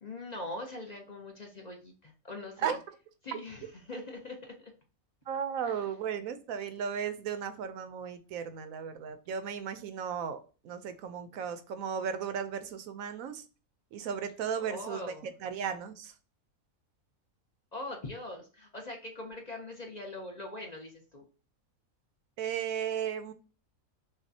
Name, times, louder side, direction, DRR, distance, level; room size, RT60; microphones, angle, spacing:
voice 1, 0.0-2.8 3.2-4.7 5.7-5.9 14.6-15.3 17.7-21.2, left 2 dB, 40° left, 1 dB, 0.7 m, -42 dB
voice 2, 5.3-13.4 13.9-15.1 15.4-16.1 22.4-23.3, right 7 dB, 80° right, 10 dB, 1.0 m, -35 dB
5.8 x 2.3 x 2.7 m, 0.36 s
omnidirectional pair, 1.4 m